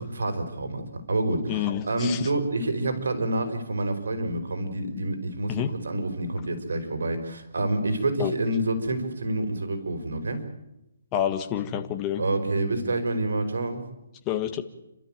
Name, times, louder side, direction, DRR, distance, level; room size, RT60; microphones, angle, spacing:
voice 1, 0.0-5.5 5.8-10.4 12.2-13.8, right 2 dB, 85° right, 8 dB, 5.0 m, -28 dB
voice 2, 1.5-2.3 5.5-5.8 8.2-8.4 11.1-12.2 14.2-14.6, left 9 dB, 20° left, 7 dB, 1.6 m, -28 dB
30.0 x 13.0 x 9.1 m, 0.90 s
hypercardioid pair, 165°, 0 cm